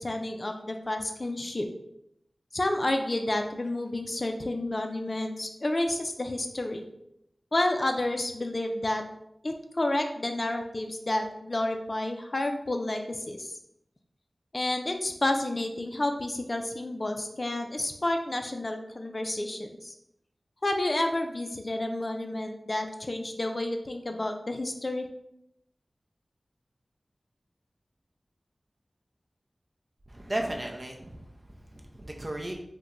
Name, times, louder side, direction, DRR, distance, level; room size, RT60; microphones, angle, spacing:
voice 1, 0.0-1.7 2.5-6.8 7.5-9.0 9.4-13.5 14.5-19.9 20.6-25.1, left 1 dB, 45° left, 5 dB, 0.3 m, -30 dB
voice 2, 30.1-32.5, right 1 dB, 40° right, 1 dB, 0.5 m, -35 dB
2.9 x 2.1 x 3.7 m, 0.79 s
wide cardioid pair, 60°, 0 cm